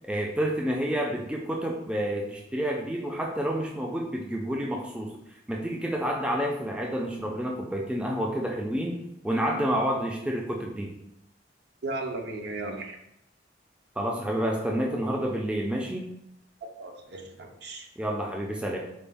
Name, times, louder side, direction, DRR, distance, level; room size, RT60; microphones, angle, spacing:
voice 1, 0.1-5.2 5.5-10.9 14.0-16.1 18.0-18.8, equal, 5° right, -1 dB, 0.3 m, -29 dB
voice 2, 11.8-13.0 16.8-17.9, right 2 dB, 60° right, 3 dB, 0.6 m, -35 dB
4.2 x 2.2 x 3.4 m, 0.81 s
head